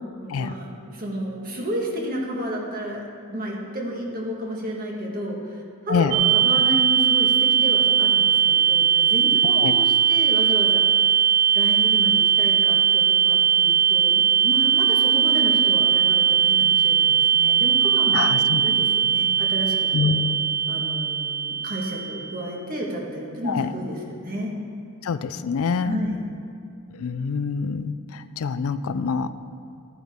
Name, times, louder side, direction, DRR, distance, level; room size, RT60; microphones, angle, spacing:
voice 1, 0.2-3.0 3.3-11.1 11.5-20.2 20.7-24.5 25.8-26.2, equal, 40° right, -2 dB, 1.6 m, -32 dB
sound 1, 6.1-22.5, right 8 dB, 85° right, 0.9 m, -19 dB
voice 2, 9.4-9.7 18.1-18.8 19.9-20.4 23.5-23.7 25.0-26.0 27.0-29.3, left 5 dB, 75° left, 13 dB, 0.4 m, -26 dB
13.5 x 9.3 x 3.6 m, 2.3 s
head